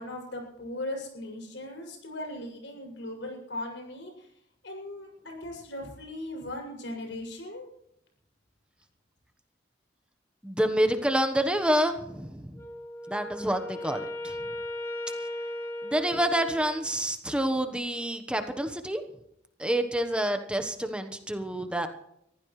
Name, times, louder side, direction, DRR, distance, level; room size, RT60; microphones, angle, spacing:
voice 1, 0.0-4.3 4.6-7.7, left 1 dB, 85° left, 1 dB, 6.9 m, -38 dB
voice 2, 10.4-12.6 13.1-14.4 15.8-19.0 19.6-21.9, right 1 dB, 5° right, 7 dB, 1.2 m, -28 dB
Wind instrument woodwind instrument, 12.5-16.9, left 1 dB, 15° left, 3.3 m, -37 dB
23.0 x 15.5 x 3.3 m, 0.75 s
head